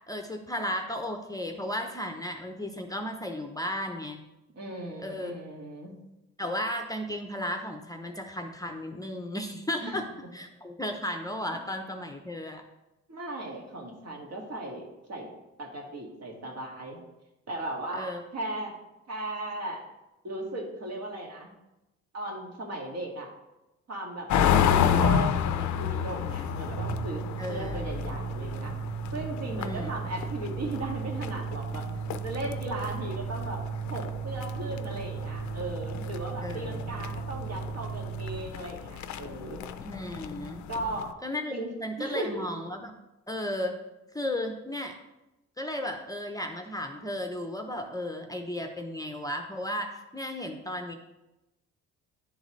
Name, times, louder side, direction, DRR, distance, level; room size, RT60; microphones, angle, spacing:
voice 1, 0.1-4.2 5.0-5.3 6.4-10.1 10.3-12.6 18.0-18.2 27.4-27.8 29.6-29.9 36.4-37.0 39.8-40.6 41.2-41.5 41.8-42.9 43.3-43.8 44.1-44.9 45.6-50.9, left 1 dB, 10° left, 4 dB, 0.6 m, -34 dB
voice 2, 4.6-5.9 9.8-10.0 13.1-15.3 15.6-17.0 17.5-18.7 19.1-19.8 20.2-21.5 22.1-23.3 23.9-28.7 29.1-33.6 33.9-39.6 40.7-41.1 41.5-41.7 42.0-42.5, right 2 dB, 60° right, -1 dB, 1.8 m, -37 dB
sound 1, 24.3-41.1, left 8 dB, 70° left, 0.5 m, -31 dB
sound 2, 26.5-38.5, right 7 dB, 35° right, 0.5 m, -36 dB
10.5 x 3.9 x 3.1 m, 0.97 s
cardioid pair, 90°, 30 cm